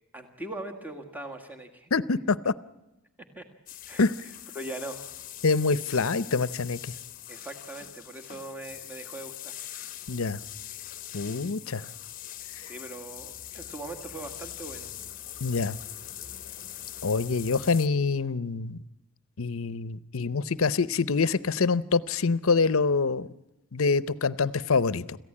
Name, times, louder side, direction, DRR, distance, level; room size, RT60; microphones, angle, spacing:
voice 1, 0.1-1.9 3.4-3.5 3.9-4.1 4.6-5.0 7.3-9.6 12.6-14.9 24.4-24.5, right 2 dB, 10° right, 4 dB, 1.7 m, -40 dB
voice 2, 1.9-2.5 4.0-4.1 5.4-6.9 10.1-10.4 11.1-11.8 12.6-12.7 15.4-15.8 17.0-18.8 19.4-23.3 23.7-25.2, left 4 dB, 70° left, 18 dB, 0.7 m, -25 dB
Shower On Off, 3.7-17.9, left 12 dB, 40° left, 0.9 m, -42 dB
26.5 x 15.0 x 8.6 m, 0.98 s
head